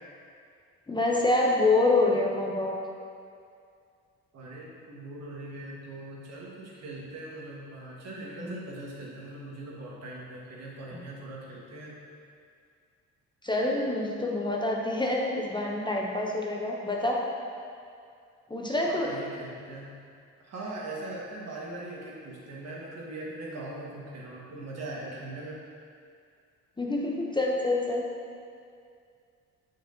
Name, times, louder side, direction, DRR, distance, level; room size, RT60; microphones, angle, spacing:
voice 1, 0.9-2.8 8.4-8.5 10.9-11.0 13.4-17.3 18.5-19.2 26.8-28.1, left 2 dB, 15° left, -1 dB, 0.6 m, -26 dB
voice 2, 4.3-12.0 18.9-19.9 20.4-25.6, right 2 dB, 60° right, -4 dB, 1.5 m, -40 dB
6.6 x 6.3 x 2.7 m, 2.3 s
cardioid pair, 90°, 30 cm